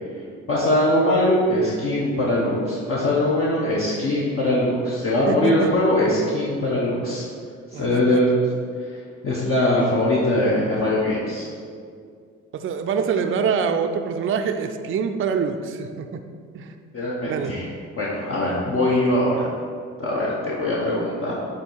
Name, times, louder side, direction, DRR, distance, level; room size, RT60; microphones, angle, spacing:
voice 1, 0.5-7.2 7.7-8.4 8.9-11.5 16.9-17.7 18.0-19.5 20.0-21.3, left 1 dB, 45° left, -6 dB, 1.1 m, -21 dB
voice 2, 5.3-5.7 7.7-8.2 12.5-16.2 16.5-16.7 17.2-17.5, right 6 dB, 45° right, 6 dB, 0.4 m, -25 dB
8.1 x 2.7 x 4.6 m, 2.2 s
cardioid pair, 90°, 30 cm